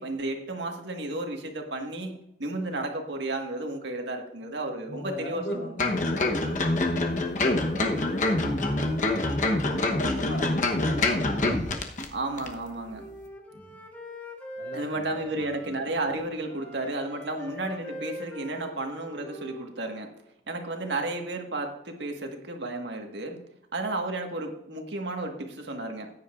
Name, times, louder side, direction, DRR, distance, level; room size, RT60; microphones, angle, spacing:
voice 1, 0.0-5.6 12.1-13.0 14.7-20.1 20.5-23.4 23.7-26.1, right 2 dB, 75° right, 3 dB, 1.6 m, -33 dB
voice 2, 4.9-9.3 9.7-11.6 13.5-13.8 14.6-15.6, left 1 dB, 70° left, 0 dB, 3.3 m, -40 dB
sound 1, 5.8-12.1 12.4-12.5, left 2 dB, 40° left, 1.0 m, -25 dB
Wind instrument woodwind instrument, 12.5-16.1 16.4-20.1, left 1 dB, 10° left, 1.3 m, -43 dB
14.5 x 9.7 x 2.5 m, 0.81 s
head